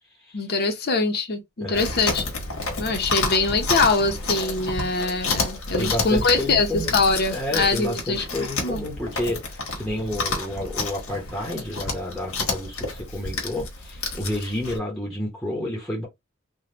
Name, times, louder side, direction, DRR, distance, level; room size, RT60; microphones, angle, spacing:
voice 1, 0.3-2.2 2.8-6.7 6.9-8.2 8.6-8.8, left 3 dB, 50° left, 0.7 m, -23 dB
voice 2, 1.6-1.9 5.8-7.0 7.3-16.1, left 1 dB, 5° left, 0.8 m, -30 dB
Chewing mastication, 1.7-14.8, left 3 dB, 75° left, 1.2 m, -30 dB
3.4 x 2.2 x 2.8 m
head